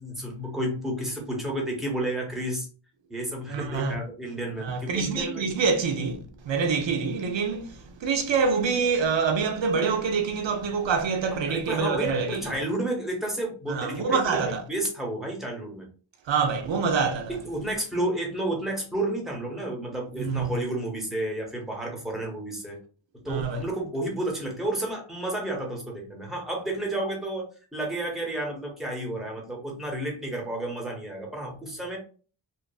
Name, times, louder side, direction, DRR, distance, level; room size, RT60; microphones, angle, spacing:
voice 1, 0.0-2.7 3.1-5.4 6.6-6.8 11.5-15.9 17.3-22.8 23.2-27.5 27.7-32.0, right 1 dB, ahead, 1.0 m, -31 dB
voice 2, 3.5-4.0 4.6-12.5 13.7-14.6 16.3-17.4 20.2-20.5 23.3-23.6, right 5 dB, 70° right, 0.5 m, -26 dB
2.8 x 2.3 x 2.3 m
wide cardioid pair, 75°, 46 cm